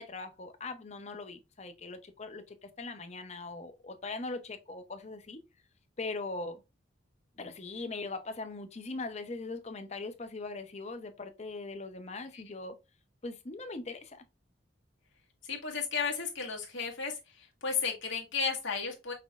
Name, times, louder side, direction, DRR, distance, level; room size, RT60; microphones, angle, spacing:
voice 1, 0.0-5.4 6.0-6.6 7.4-12.8 13.2-14.2, left 3 dB, 35° left, 0.7 m, -40 dB
voice 2, 15.5-19.1, left 5 dB, 80° left, 1.7 m, -34 dB
5.9 x 3.1 x 2.4 m
head